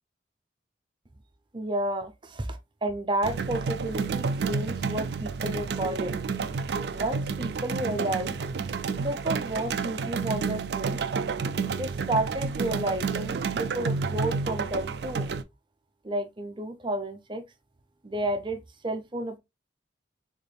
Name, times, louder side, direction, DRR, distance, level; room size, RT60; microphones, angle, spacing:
voice 1, 1.5-6.1 6.9-8.4 9.0-11.0 11.7-15.3 16.0-17.4 18.0-19.4, right 1 dB, 25° right, 0.6 m, -31 dB
sound 1, 3.2-15.4, right 5 dB, 65° right, 0.4 m, -30 dB
3.7 x 3.4 x 2.3 m
head